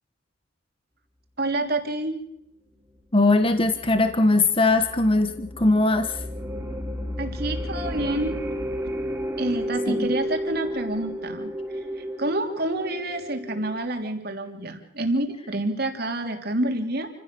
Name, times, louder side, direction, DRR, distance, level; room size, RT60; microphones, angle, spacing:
voice 1, 1.4-2.2 7.2-8.4 9.4-17.1, right 1 dB, 50° right, 5 dB, 3.3 m, -28 dB
voice 2, 3.1-6.2 9.9-10.1, left 2 dB, 25° left, 9 dB, 1.3 m, -20 dB
sound 1, 3.5-13.8, equal, 10° right, 3.5 m, -32 dB
29.0 x 16.0 x 6.9 m, 0.79 s
head